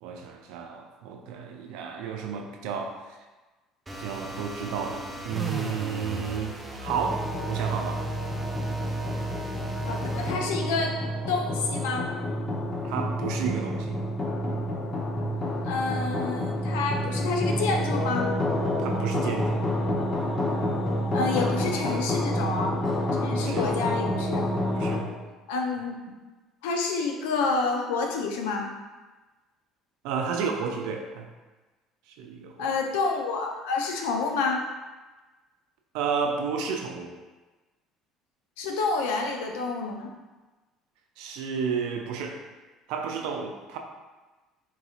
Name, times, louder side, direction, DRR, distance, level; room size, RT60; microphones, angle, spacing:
voice 1, 0.0-3.2 4.0-8.1 12.8-14.0 18.8-19.6 23.4-23.7 24.7-25.1 30.0-31.3 32.1-32.7 35.9-37.1 41.2-42.4 42.9-43.8, right 6 dB, 75° right, 3 dB, 0.4 m, -32 dB
sound 1, 3.9-10.4, left 1 dB, 15° right, 0.5 m, -37 dB
sound 2, 6.9-25.0, equal, 35° left, 0.6 m, -28 dB
voice 2, 9.8-11.0 11.3-12.1 15.6-18.3 21.1-22.8 23.2-24.5 25.5-26.0 26.6-28.7 32.6-34.6 38.6-40.1, left 4 dB, 80° left, 2 dB, 0.5 m, -28 dB
3.8 x 2.8 x 2.4 m, 1.2 s
hypercardioid pair, 70°, 0 cm